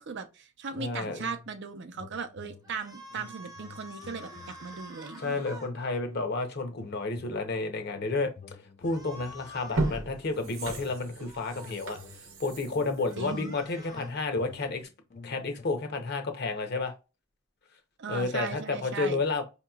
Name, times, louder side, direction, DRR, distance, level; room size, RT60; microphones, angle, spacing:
voice 1, 0.0-5.4 13.2-13.5 18.0-19.2, right 5 dB, 55° right, 0.5 m, -38 dB
sound 1, 0.7-1.6 1.9-5.0 5.5-6.4 6.7-9.8 10.3-15.6, left 4 dB, 35° left, 0.4 m, -51 dB
voice 2, 0.8-1.2 5.2-8.3 8.8-12.0 12.4-14.8 15.2-16.9 18.1-19.4, left 3 dB, 50° left, 0.8 m, -31 dB
sound 2, 2.6-5.7 8.8-10.0 11.2-11.7 12.9-14.1, equal, 15° right, 0.7 m, -48 dB
sound 3, 9.0-9.1 9.6-14.3 14.7-14.8, right 2 dB, 80° right, 0.8 m, -36 dB
4.7 x 2.9 x 2.3 m
head